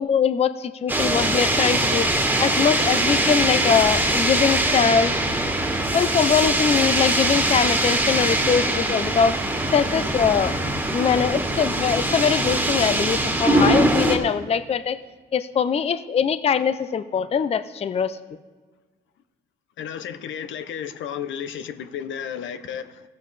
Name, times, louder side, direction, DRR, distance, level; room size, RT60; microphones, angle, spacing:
voice 1, 0.0-2.1 2.4-5.1 5.9-9.3 9.7-10.5 10.9-15.0 15.3-18.2, left 7 dB, 30° left, 0.5 m, -22 dB
sound 1, 0.9-14.2, right 1 dB, 10° right, 1.8 m, -22 dB
voice 2, 19.8-23.0, left 8 dB, 75° left, 0.7 m, -33 dB
15.5 x 7.5 x 4.0 m
cardioid pair, 90°, 20 cm